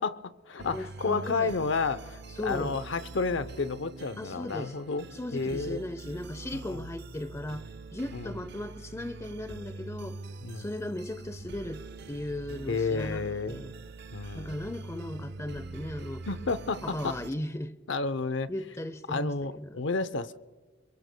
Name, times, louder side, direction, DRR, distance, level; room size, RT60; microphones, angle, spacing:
voice 1, 0.0-5.8 6.5-6.9 8.1-8.4 10.4-10.7 12.7-13.6 14.1-14.6 16.3-17.2 17.9-18.5 19.1-20.3, left 4 dB, 75° left, 0.7 m, -31 dB
sound 1, 0.6-17.3, right 3 dB, 60° right, 0.6 m, -44 dB
voice 2, 0.7-1.5 2.4-2.8 4.2-4.7 5.1-7.7 7.9-10.2 10.6-13.7 14.3-16.2 16.8-17.7 18.5-19.8, left 1 dB, 15° left, 0.6 m, -37 dB
27.0 x 23.0 x 2.2 m
head